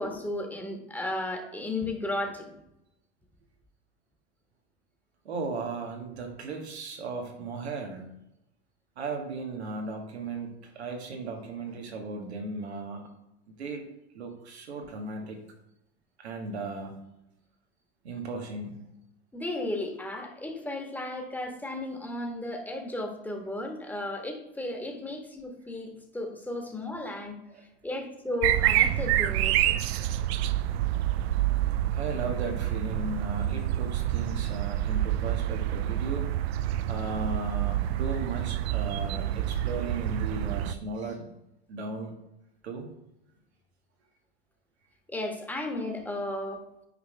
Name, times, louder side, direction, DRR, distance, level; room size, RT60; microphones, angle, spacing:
voice 1, 0.0-2.5 19.3-27.4 27.8-29.7 45.1-46.6, left 1 dB, 5° left, 2 dB, 1.4 m, -34 dB
voice 2, 5.2-8.0 9.0-13.1 13.6-13.8 14.1-15.4 16.2-17.0 18.0-18.9 27.5-27.6 31.9-36.4 36.8-41.2 41.7-42.1 42.6-42.9, right 3 dB, 90° right, 3 dB, 1.5 m, -36 dB
sound 1, 28.4-40.7, right 13 dB, 75° right, 0.5 m, -28 dB
9.4 x 5.0 x 3.3 m, 0.87 s
hypercardioid pair, 90°, 32 cm